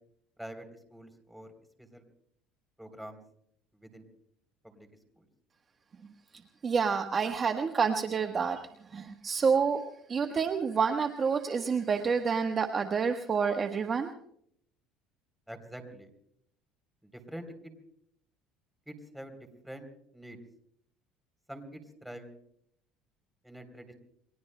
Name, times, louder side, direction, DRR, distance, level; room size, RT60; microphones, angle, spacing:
voice 1, 0.4-1.5 1.8-2.1 2.8-3.2 3.7-4.1 4.6-4.9 5.1-5.2 15.5-16.1 17.0-17.7 18.9-19.9 20.1-20.4 21.5-22.3 23.4-23.9, right 1 dB, ahead, 6 dB, 3.4 m, -46 dB
voice 2, 6.6-8.6 8.9-9.8 10.1-14.1, right 6 dB, 30° right, 5 dB, 1.2 m, -28 dB
29.5 x 22.0 x 2.2 m, 0.70 s
supercardioid pair, 110°, 0 cm